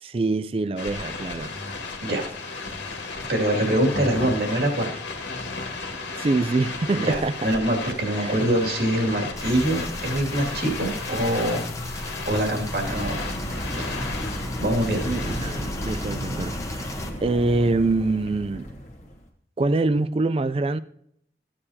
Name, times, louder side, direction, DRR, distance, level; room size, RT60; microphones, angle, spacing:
voice 1, 0.0-1.6 6.1-7.4 8.2-8.3 15.1-16.9 17.2-18.8 19.6-20.8, right 3 dB, 30° right, 0.4 m, -25 dB
sound 1, 0.8-16.0, left 3 dB, 80° left, 1.8 m, -34 dB
voice 2, 3.3-5.0 6.9-13.2 13.7-14.1 14.6-15.0, right 1 dB, 65° right, 2.4 m, -24 dB
sound 2, 9.4-17.1, left 2 dB, 15° left, 1.0 m, -34 dB
sound 3, 12.8-19.3, equal, 45° left, 1.3 m, -34 dB
15.0 x 8.7 x 2.8 m
head